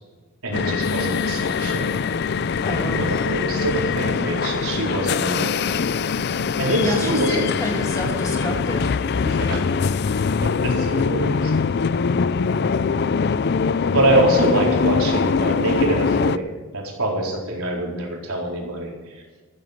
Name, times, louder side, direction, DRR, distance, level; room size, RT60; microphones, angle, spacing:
voice 1, 0.4-2.0 2.9-5.6 6.6-7.6 9.2-9.6 10.4-11.5 13.9-19.2, right 1 dB, 85° right, -2 dB, 4.3 m, -24 dB
sound 1, 0.5-16.4, left 5 dB, 50° left, 0.4 m, -22 dB
voice 2, 2.6-3.0 6.8-9.0, equal, 15° left, 0 dB, 2.6 m, -28 dB
14.5 x 13.0 x 5.1 m, 1.4 s
head